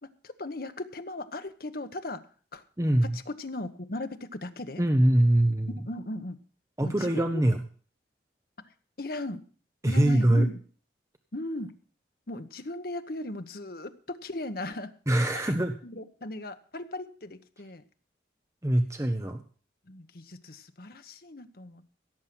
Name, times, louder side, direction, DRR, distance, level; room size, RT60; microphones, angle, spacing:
voice 1, 0.0-2.2 2.5-2.6 3.0-4.8 5.8-6.4 6.8-7.4 9.0-9.4 9.9-10.6 11.3-11.7 12.3-14.9 15.3-15.6 15.8-17.8 19.9-21.9, left 2 dB, 55° left, 8 dB, 1.1 m, -37 dB
voice 2, 2.8-3.2 4.8-5.8 6.8-7.6 9.8-10.5 15.1-15.8 18.6-19.4, right 1 dB, 15° right, 6 dB, 0.9 m, -23 dB
16.5 x 7.5 x 6.0 m, 0.42 s
head